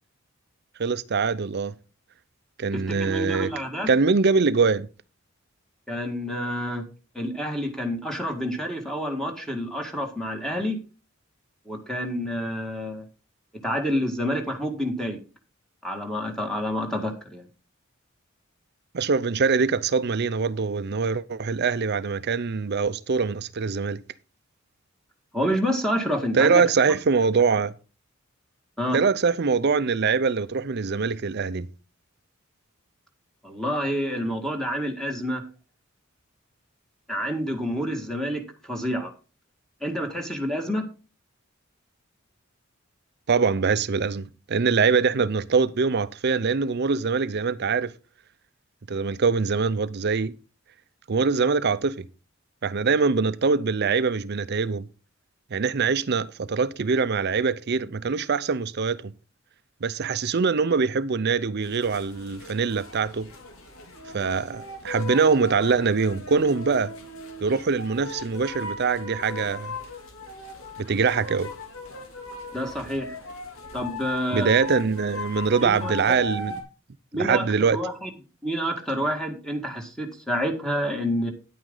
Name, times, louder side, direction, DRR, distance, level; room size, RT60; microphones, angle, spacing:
voice 1, 0.8-1.8 2.6-3.5 3.9-4.9 18.9-24.0 26.3-27.7 28.9-31.7 43.3-47.9 48.9-50.3 51.1-52.1 52.6-54.9 55.5-59.1 59.8-63.3 64.1-66.9 67.4-69.7 70.8-71.5 74.3-76.6 77.1-77.8, right 5 dB, 50° right, 0.6 m, -23 dB
voice 2, 2.7-3.9 5.9-6.8 7.1-10.8 11.7-13.0 13.6-15.2 15.8-17.4 25.3-26.6 28.8-29.0 33.4-35.4 37.1-39.1 39.8-40.8 72.5-73.1 73.7-74.5 75.6-76.2 77.1-78.1 78.4-81.3, equal, 5° left, 1.9 m, -28 dB
sound 1, 61.6-76.6, left 2 dB, 85° left, 3.0 m, -38 dB
10.0 x 9.2 x 3.8 m
head